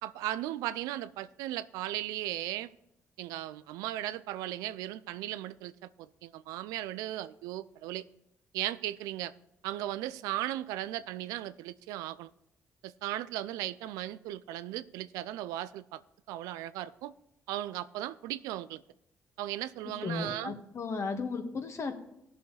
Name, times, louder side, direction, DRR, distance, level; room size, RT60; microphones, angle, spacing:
voice 1, 0.0-2.7 3.2-8.0 8.5-9.3 9.6-12.3 12.8-16.0 16.3-17.1 17.5-18.8 19.4-20.5, right 14 dB, 85° right, 15 dB, 0.4 m, -37 dB
voice 2, 20.0-21.9, left 4 dB, 50° left, 5 dB, 1.8 m, -35 dB
17.0 x 6.9 x 3.3 m, 0.81 s
supercardioid pair, 55°, 6 cm